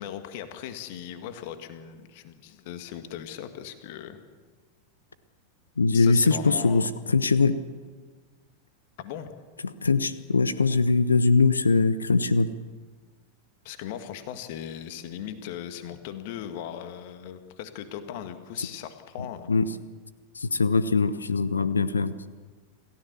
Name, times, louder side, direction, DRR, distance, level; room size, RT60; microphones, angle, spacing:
voice 1, 0.0-4.2 5.9-6.9 9.0-9.3 13.6-19.5, left 10 dB, 50° left, 8 dB, 2.0 m, -38 dB
voice 2, 5.8-7.6 9.6-12.5 19.5-19.7 20.3-22.1, left 4 dB, 75° left, 15 dB, 0.9 m, -22 dB
28.0 x 16.0 x 7.0 m, 1.4 s
figure-of-eight pair, 90°, 0 cm